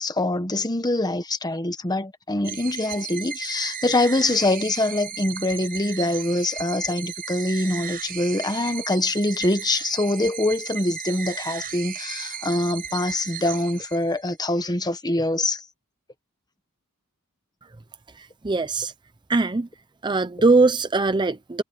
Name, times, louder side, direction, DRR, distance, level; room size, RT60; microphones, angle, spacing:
voice 1, 0.0-15.6, left 2 dB, 20° left, 1.3 m, -24 dB
sound 1, 2.4-14.4, right 8 dB, 40° right, 4.9 m, -35 dB
voice 2, 18.4-18.9 19.3-19.7 20.0-21.6, right 3 dB, 20° right, 0.6 m, -20 dB
head